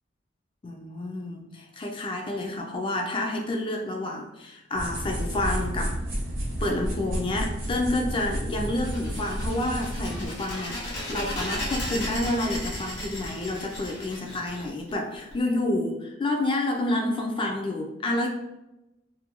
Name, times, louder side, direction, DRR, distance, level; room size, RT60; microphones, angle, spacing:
voice 1, 0.6-6.0 6.6-18.3, left 1 dB, 25° left, 1 dB, 0.3 m, -29 dB
sound 1, 4.7-10.3, equal, 85° right, 0.8 m, -31 dB
sound 2, 8.8-15.3, left 1 dB, 80° left, 0.9 m, -35 dB
2.5 x 2.2 x 2.8 m, 0.93 s
head